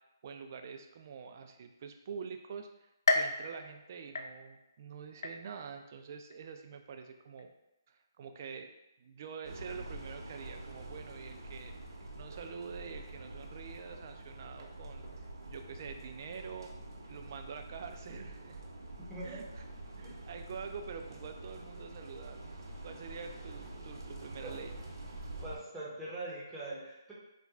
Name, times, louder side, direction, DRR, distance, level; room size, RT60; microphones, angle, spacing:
voice 1, 0.2-7.5 7.9-8.7 9.0-11.7 12.2-16.7 17.1-18.6 19.2-19.6 20.0-22.4 22.8-24.7, right 6 dB, 45° right, 6 dB, 0.3 m, -46 dB
sound 1, 3.1-4.8 5.2-5.8 6.3-6.4 7.4-7.5, left 3 dB, 70° left, 0.3 m, -33 dB
sound 2, 9.4-25.6, right 2 dB, 75° right, 0.8 m, -46 dB
voice 2, 19.1-19.5 20.0-20.2 24.4-24.5 25.4-27.1, right 2 dB, 5° right, -8 dB, 0.8 m, -42 dB
4.1 x 2.2 x 2.4 m, 0.92 s
hypercardioid pair, 155°, 2 cm